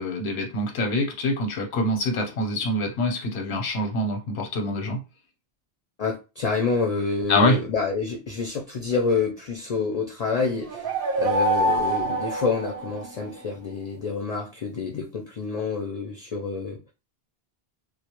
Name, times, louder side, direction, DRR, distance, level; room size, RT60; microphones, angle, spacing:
voice 1, 0.0-5.0 7.3-7.6, left 1 dB, 90° left, 3 dB, 0.9 m, -25 dB
voice 2, 6.0-10.9 11.2-16.8, left 4 dB, 55° left, 1 dB, 0.4 m, -27 dB
sound 1, 10.5-13.4, right 2 dB, 65° right, 0.7 m, -26 dB
2.1 x 2.0 x 2.9 m, 0.29 s
omnidirectional pair, 1.1 m